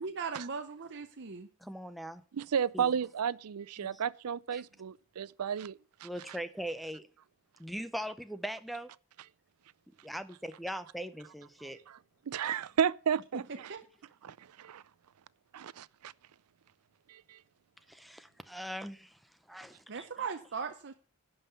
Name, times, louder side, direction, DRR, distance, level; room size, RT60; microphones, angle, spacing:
voice 1, 0.0-1.5 13.7-13.8 19.9-20.9, right 5 dB, 55° right, 0.7 m, -38 dB
voice 2, 1.6-2.2 2.7-2.9 3.8-4.0 4.5-4.6 6.0-7.0 7.6-8.9 10.0-11.8 17.9-19.2 19.5-19.8, equal, ahead, 0.5 m, -40 dB
voice 3, 2.3-6.1 11.9-12.0 12.3-13.7 14.2-14.8 15.5-16.1 17.1-17.4, right 7 dB, 90° right, 0.5 m, -33 dB
11.0 x 5.6 x 7.0 m
head